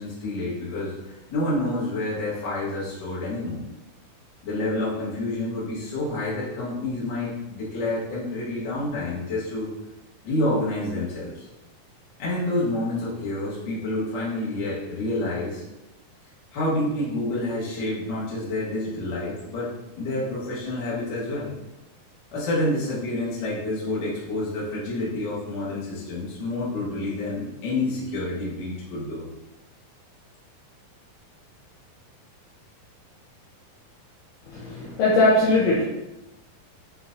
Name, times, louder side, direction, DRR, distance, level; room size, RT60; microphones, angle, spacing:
voice 1, 0.0-3.6 4.4-9.7 10.2-11.5 12.2-15.6 16.5-21.5 22.3-29.3, left 2 dB, 60° left, -8 dB, 1.1 m, -28 dB
voice 2, 34.5-35.8, left 2 dB, 85° left, -5 dB, 1.8 m, -20 dB
6.5 x 2.4 x 2.6 m, 0.95 s
omnidirectional pair, 4.2 m